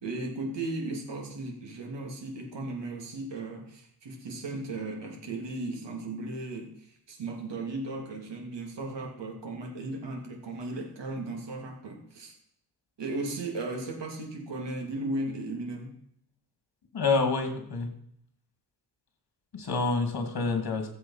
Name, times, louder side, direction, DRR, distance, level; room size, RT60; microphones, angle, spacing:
voice 1, 0.0-12.3 13.0-16.0, right 2 dB, 85° right, 1 dB, 2.8 m, -36 dB
voice 2, 16.9-17.9 19.5-20.9, left 3 dB, 60° left, 5 dB, 2.7 m, -27 dB
15.5 x 7.7 x 5.7 m, 0.69 s
wide cardioid pair, 110°, 42 cm